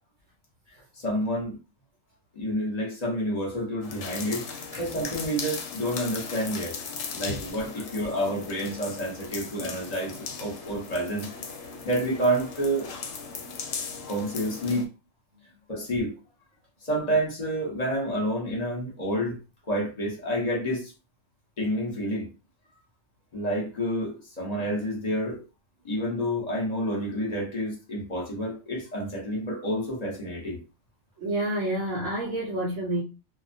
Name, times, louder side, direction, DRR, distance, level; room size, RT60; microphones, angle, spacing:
voice 1, 1.0-1.6 2.4-4.4 4.8-6.8 7.1-11.3 11.8-12.9 14.1-14.9 15.7-16.1 16.8-19.4 19.7-20.9 21.6-22.3 23.3-25.4 25.8-30.6, equal, 35° left, 0.8 m, -29 dB
sound 1, 3.8-14.9, left 5 dB, 70° left, 0.8 m, -38 dB
voice 2, 31.2-33.0, right 1 dB, 75° right, 1.0 m, -29 dB
2.2 x 2.1 x 2.6 m
omnidirectional pair, 1.4 m